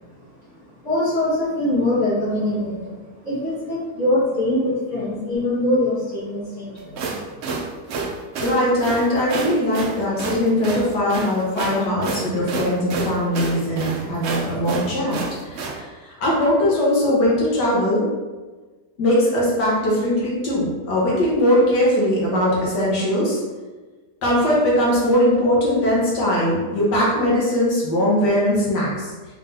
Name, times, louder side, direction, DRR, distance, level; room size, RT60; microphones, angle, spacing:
voice 1, 0.8-7.1, left 1 dB, 45° left, -11 dB, 1.6 m, -23 dB
sound 1, 6.8-15.8, right 4 dB, 70° right, 0.6 m, -29 dB
voice 2, 8.4-15.2 15.4-18.1 19.0-23.4 24.2-29.3, left 1 dB, 80° left, -5 dB, 1.7 m, -20 dB
4.2 x 3.7 x 2.6 m, 1.3 s
omnidirectional pair, 1.8 m